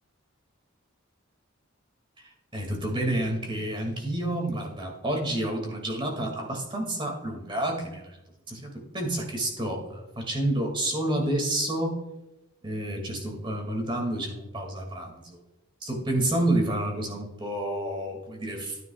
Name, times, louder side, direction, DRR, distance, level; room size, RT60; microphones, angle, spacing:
voice 1, 2.2-8.1 8.5-12.0 12.6-15.4 15.8-18.8, right 1 dB, 25° right, 1 dB, 2.3 m, -29 dB
13.5 x 9.3 x 2.4 m, 0.97 s
head